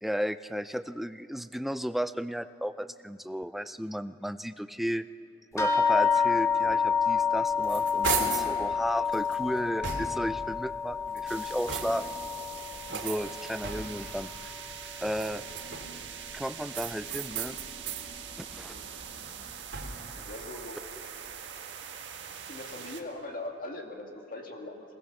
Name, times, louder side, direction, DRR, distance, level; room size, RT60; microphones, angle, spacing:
voice 1, 0.0-5.0 5.5-12.2 12.9-14.5 15.0-15.4 16.3-17.6 18.4-18.7 20.2-20.3, equal, ahead, 12 dB, 0.4 m, -34 dB
sound 1, 5.6-14.4 14.7-15.6 16.3-16.4 16.9-17.0, left 6 dB, 15° left, 2.1 m, -29 dB
sound 2, 7.2-8.6 9.1-10.4 11.0-12.2 12.9-14.1 15.0-16.1 16.7-18.1 18.5-20.2, right 6 dB, 90° right, 2.6 m, -37 dB
sound 3, 11.3-23.0, right 7 dB, 70° right, 1.7 m, -43 dB
voice 2, 20.3-20.8 22.5-24.9, left 2 dB, 50° left, 2 dB, 2.2 m, -40 dB
22.5 x 19.5 x 7.0 m, 2.7 s
head